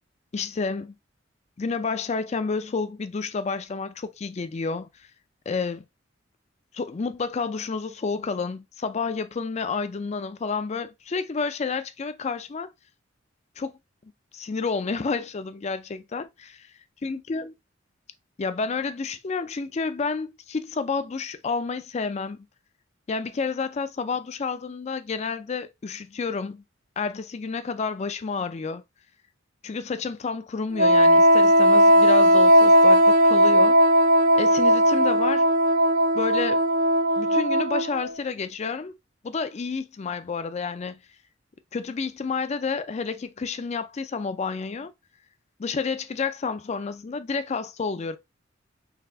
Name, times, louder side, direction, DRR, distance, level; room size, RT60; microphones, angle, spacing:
voice 1, 0.3-1.0 1.6-4.9 5.5-5.8 6.7-12.7 13.6-13.7 14.3-16.5 17.0-17.5 18.4-22.4 23.1-26.6 27.0-28.8 29.6-33.8 34.4-35.5 36.1-36.6 37.2-39.0 39.2-41.0 41.7-44.9 45.6-48.2, left 4 dB, 35° left, 0.4 m, -30 dB
Wind instrument woodwind instrument, 30.8-38.1, equal, 45° right, 0.4 m, -17 dB
4.0 x 3.2 x 2.7 m
head